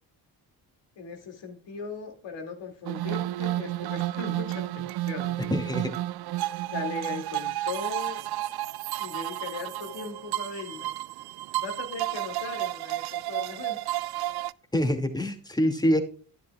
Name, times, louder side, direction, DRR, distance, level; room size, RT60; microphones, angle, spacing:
voice 1, 1.0-5.8 6.7-8.2 9.0-10.9 11.6-13.8, left 5 dB, 65° left, 3 dB, 2.7 m, -38 dB
sound 1, 2.8-14.5, right 15 dB, 55° right, 0.5 m, -32 dB
voice 2, 5.5-5.9 14.7-16.0, equal, 10° left, 6 dB, 2.4 m, -25 dB
11.0 x 10.5 x 2.4 m, 0.39 s
hypercardioid pair, 50°, 46 cm